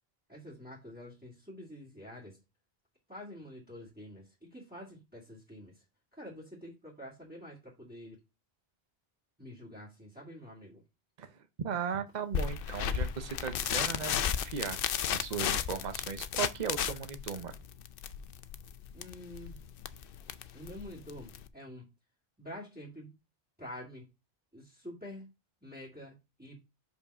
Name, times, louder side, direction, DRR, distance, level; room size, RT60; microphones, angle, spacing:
voice 1, 0.3-2.4 3.1-5.8 6.2-8.2 9.4-10.8 18.9-19.6 20.5-21.9 22.4-23.1 23.6-24.1 24.5-25.3 25.6-26.1 26.4-26.6, left 1 dB, 10° right, 2.2 m, -47 dB
voice 2, 11.2-14.8 15.1-17.6, right 7 dB, 45° right, 0.9 m, -37 dB
sound 1, 12.3-21.5, left 8 dB, 65° left, 0.7 m, -34 dB
5.3 x 4.8 x 5.4 m
omnidirectional pair, 1.0 m